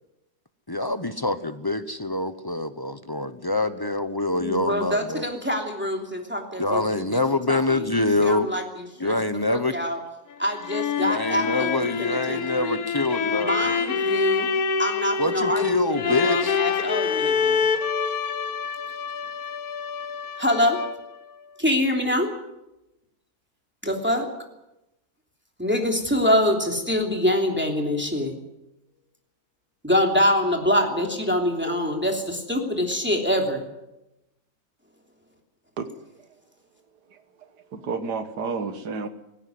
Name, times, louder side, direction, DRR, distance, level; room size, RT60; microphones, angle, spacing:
voice 1, 0.7-5.2 6.6-8.5 9.0-9.7 11.0-13.7 15.2-16.6, left 2 dB, 20° left, 11 dB, 0.6 m, -25 dB
voice 2, 4.4-6.8 7.1-7.2 7.5-9.2 9.5-10.0 10.4-11.7 12.0-12.8 13.3-14.5 14.8-17.7 20.4-20.8 21.6-22.3 23.8-24.3 25.6-28.3 29.8-33.7, left 1 dB, 5° right, 2 dB, 3.0 m, -25 dB
sound 1, 10.3-21.2, left 6 dB, 65° left, 1.4 m, -26 dB
voice 3, 37.7-39.1, right 4 dB, 90° right, 10 dB, 2.0 m, -30 dB
18.5 x 16.0 x 9.4 m, 0.93 s
omnidirectional pair, 1.7 m